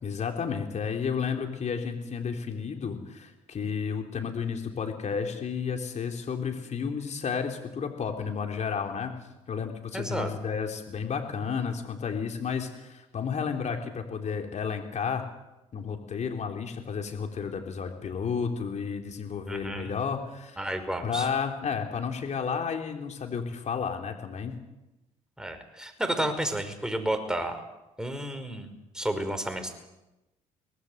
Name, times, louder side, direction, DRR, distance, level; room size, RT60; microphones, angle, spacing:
voice 1, 0.0-9.2 9.5-15.3 15.7-20.7 21.0-24.6, left 6 dB, 45° left, 4 dB, 3.8 m, -32 dB
voice 2, 9.9-10.3 19.5-19.9 20.6-21.3 25.4-27.6 28.0-29.7, right 1 dB, 5° right, 6 dB, 5.3 m, -31 dB
24.0 x 19.0 x 8.2 m, 1.0 s
hypercardioid pair, 60°, 16 cm